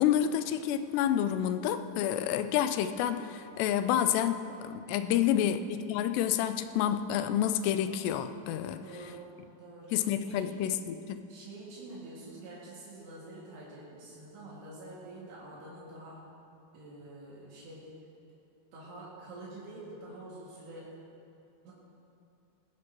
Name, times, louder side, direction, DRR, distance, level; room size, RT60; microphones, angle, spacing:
voice 1, 0.0-8.8 9.9-11.2, left 10 dB, 85° left, 10 dB, 2.8 m, -29 dB
voice 2, 5.1-5.6 8.8-10.6 11.3-16.3 16.7-18.0 18.7-21.0 21.6-21.7, right 2 dB, 80° right, -7 dB, 4.4 m, -47 dB
20.0 x 16.5 x 3.1 m, 2.7 s
omnidirectional pair, 4.8 m